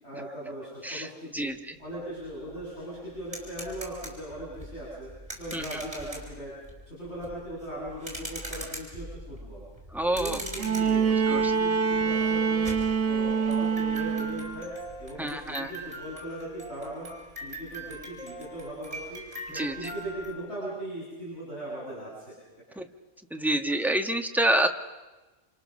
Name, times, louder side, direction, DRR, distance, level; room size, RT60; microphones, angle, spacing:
voice 1, 0.0-1.5 1.8-5.1 5.4-6.5 6.9-9.6 10.0-12.7 13.0-14.7 15.0-17.1 17.4-19.2 19.5-22.3, right 1 dB, 55° left, -8 dB, 8.2 m, -39 dB
voice 2, 0.8-1.8 5.5-5.8 9.9-10.4 11.3-11.5 15.2-15.7 19.5-19.9 22.8-22.9 23.3-24.7, right 1 dB, ahead, 5 dB, 1.3 m, -28 dB
sound 1, 1.9-2.0 2.3-20.3, right 1 dB, 25° right, 5.8 m, -42 dB
Bowed string instrument, 10.6-14.6 15.9-16.0, right 6 dB, 85° right, 1.6 m, -25 dB
29.0 x 27.0 x 6.6 m, 1.1 s
omnidirectional pair, 1.3 m